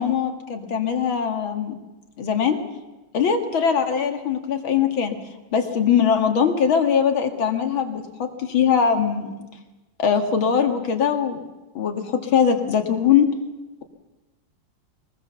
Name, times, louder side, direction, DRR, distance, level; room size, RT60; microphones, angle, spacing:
voice 1, 0.0-1.8 2.2-2.6 3.1-5.2 5.5-9.3 10.0-11.4 11.7-13.3, left 7 dB, 70° left, 5 dB, 2.6 m, -21 dB
23.5 x 20.0 x 7.0 m, 1.1 s
omnidirectional pair, 2.3 m